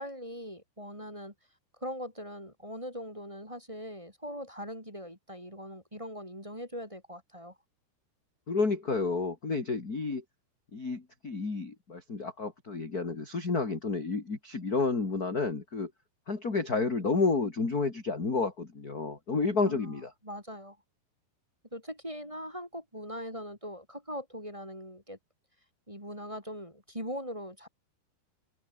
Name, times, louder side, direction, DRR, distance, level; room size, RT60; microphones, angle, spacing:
voice 1, 0.0-1.3 1.8-7.6 19.6-20.8 21.7-25.2 25.9-27.7, equal, 5° right, 5.8 m, -41 dB
voice 2, 8.5-10.2 10.7-15.9 16.3-20.1, left 4 dB, 25° left, 3.4 m, -30 dB
omnidirectional pair, 5.0 m